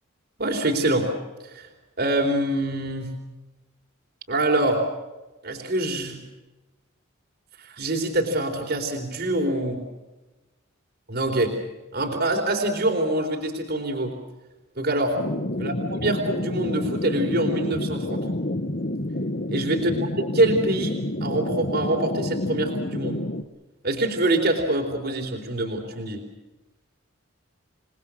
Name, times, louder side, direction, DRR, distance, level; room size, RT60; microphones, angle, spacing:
voice 1, 0.4-1.1 1.4-1.7 2.0-3.2 4.3-4.8 5.4-6.2 7.6-9.8 11.1-11.6 11.9-14.2 14.8-15.2 15.6-18.3 19.5-19.9 20.3-23.2 23.8-26.2, right 1 dB, 50° right, 2 dB, 3.9 m, -25 dB
sound 1, 15.2-23.4, left 1 dB, 45° left, 1.3 m, -29 dB
28.5 x 20.5 x 6.3 m, 1.1 s
head